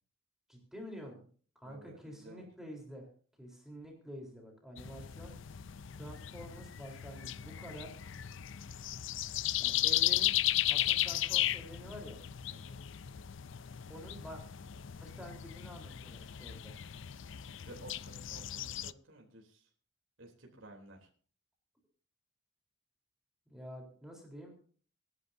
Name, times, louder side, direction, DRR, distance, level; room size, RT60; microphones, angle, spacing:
voice 1, 0.5-1.3 1.6-3.1 3.4-5.3 5.9-8.0 9.6-10.4 10.7-12.2 13.9-14.4 15.0-16.8 23.5-24.5, equal, 5° right, 0 dB, 3.9 m, -48 dB
voice 2, 1.6-2.5 12.5-12.8 17.6-19.7 20.2-21.1, right 1 dB, 85° right, 0 dB, 3.4 m, -54 dB
sound 1, 4.8-18.9, left 13 dB, 65° left, 0.5 m, -35 dB
27.5 x 11.0 x 2.7 m, 0.43 s
head